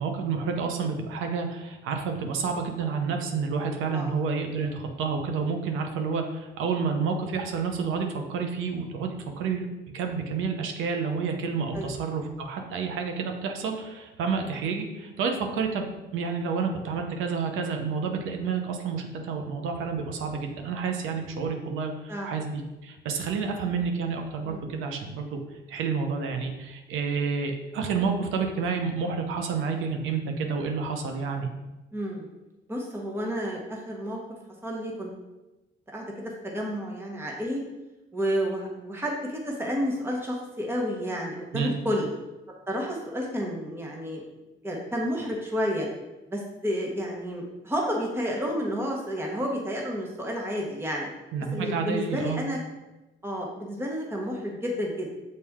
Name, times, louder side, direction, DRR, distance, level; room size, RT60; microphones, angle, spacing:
voice 1, 0.0-9.7 9.9-15.9 16.1-25.4 25.7-31.5 41.5-41.7 51.3-52.4, right 5 dB, 90° right, 4 dB, 0.9 m, -29 dB
voice 2, 31.9-32.3 32.7-34.2 34.6-35.1 35.9-37.6 38.1-42.1 42.7-44.2 44.6-45.9 46.3-51.1 51.5-52.6 53.2-55.1, equal, 10° right, -1 dB, 1.1 m, -30 dB
6.7 x 4.2 x 3.6 m, 1.0 s
cardioid pair, 90°, 20 cm